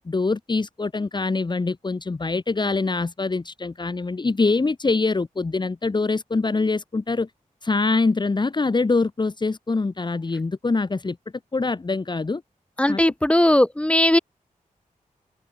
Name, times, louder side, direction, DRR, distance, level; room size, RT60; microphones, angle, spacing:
voice 1, 0.1-7.3 7.6-11.2 11.5-12.4 12.9-13.0, left 3 dB, 35° left, 1.8 m, -24 dB
voice 2, 12.8-14.2, left 1 dB, 10° left, 2.6 m, -18 dB
open air
wide cardioid pair, 100°, 14 cm